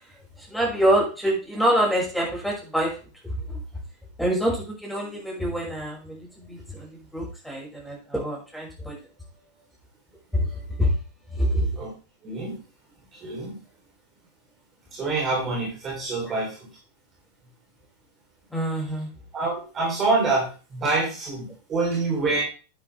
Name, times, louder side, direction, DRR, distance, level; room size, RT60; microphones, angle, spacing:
voice 1, 0.5-3.0 3.2-3.6 4.2-9.0 10.3-10.9 11.3-11.6 18.5-19.1, equal, ahead, -3 dB, 5.8 m, -26 dB
voice 2, 12.2-12.5 13.1-13.6 14.9-16.7 19.3-22.4, right 3 dB, 25° right, -3 dB, 3.6 m, -26 dB
10.0 x 9.8 x 3.4 m, 0.34 s
figure-of-eight pair, 90°, 0 cm